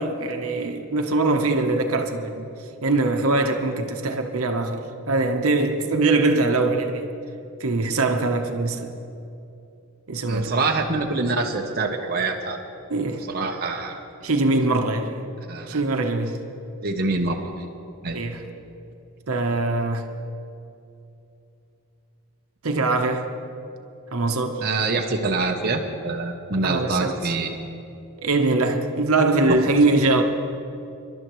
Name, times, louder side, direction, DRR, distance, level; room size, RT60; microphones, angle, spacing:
voice 1, 0.0-2.5 2.8-7.1 7.6-8.9 10.1-10.6 12.9-13.2 14.2-15.2 15.7-16.4 18.1-18.4 19.3-20.1 22.6-23.3 24.1-24.6 26.6-27.3 28.2-30.2, right 2 dB, 70° right, 1.0 m, -22 dB
voice 2, 10.3-12.6 13.3-14.0 15.5-15.8 16.8-17.5 18.0-18.2 24.6-27.5 29.5-29.6, right 3 dB, 45° right, 0.8 m, -25 dB
25.5 x 12.0 x 3.1 m
head